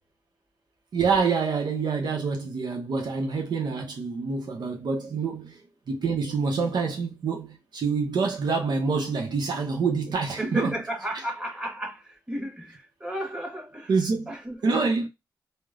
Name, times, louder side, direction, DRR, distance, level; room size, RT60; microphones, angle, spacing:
voice 1, 0.9-10.8 13.9-14.3 14.6-15.1, right 4 dB, 75° right, 0.7 m, -26 dB
voice 2, 10.1-14.0 14.3-14.9, right 1 dB, 10° right, 1.4 m, -34 dB
2.9 x 2.1 x 2.4 m
cardioid pair, 55°, 7 cm